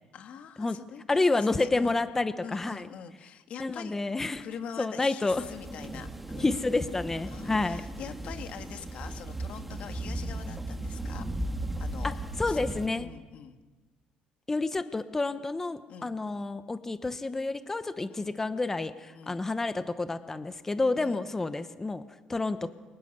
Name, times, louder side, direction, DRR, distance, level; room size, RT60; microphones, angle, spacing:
voice 1, 0.1-2.0 2.4-4.0 4.4-6.6 7.3-11.3 11.8-12.1 12.5-13.6 15.9-16.1 18.1-18.3 19.1-19.4 21.0-21.3, left 8 dB, 50° left, 7 dB, 2.0 m, -44 dB
voice 2, 1.1-2.9 3.6-4.4 4.8-5.4 6.4-7.8 12.0-13.1 14.5-22.0 22.3-22.7, left 3 dB, 15° left, 11 dB, 1.1 m, -29 dB
sound 1, 5.3-12.9, right 1 dB, 5° right, 1.7 m, -36 dB
29.5 x 25.0 x 6.8 m, 1.3 s
cardioid pair, 135°, 3 cm